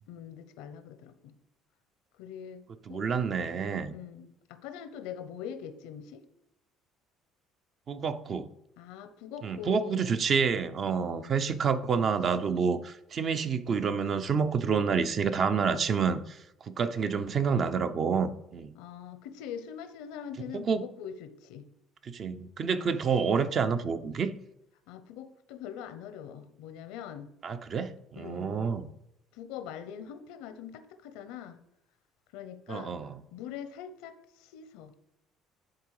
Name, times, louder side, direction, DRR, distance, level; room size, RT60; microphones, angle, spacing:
voice 1, 0.1-1.3 2.2-3.1 3.9-6.2 8.8-10.0 10.9-11.3 18.7-21.7 22.8-23.0 24.9-27.3 28.2-28.6 29.3-31.6 32.3-33.0 33.3-34.9, left 8 dB, 90° left, 11 dB, 0.8 m, -43 dB
voice 2, 2.9-3.9 7.9-8.5 9.4-18.7 20.5-20.9 22.0-24.3 27.4-28.9 32.7-33.2, right 6 dB, 45° right, 10 dB, 0.7 m, -28 dB
10.5 x 3.8 x 4.8 m, 0.79 s
cardioid pair, 100°, 0 cm